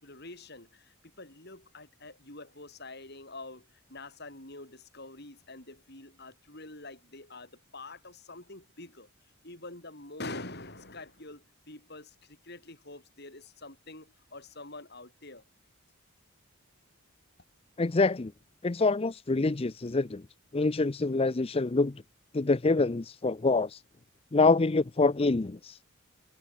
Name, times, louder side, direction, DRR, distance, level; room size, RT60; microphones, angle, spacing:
voice 1, 0.0-9.1 9.4-15.4, left 2 dB, 50° left, 6.9 m, -46 dB
voice 2, 17.8-18.3 18.6-20.2 20.5-21.9 22.3-23.8 24.3-25.8, left 3 dB, 25° left, 0.5 m, -26 dB
head